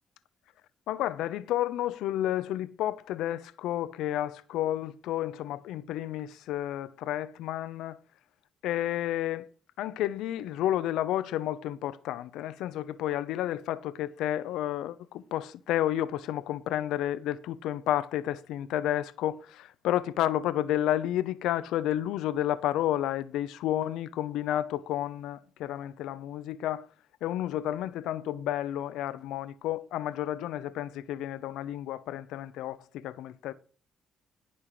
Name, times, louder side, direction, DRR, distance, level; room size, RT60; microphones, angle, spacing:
voice 1, 0.9-8.0 8.6-9.4 9.8-26.9 27.2-33.5, left 12 dB, 90° left, 0.7 m, -31 dB
16.5 x 5.5 x 4.9 m
cardioid pair, 90°, 0 cm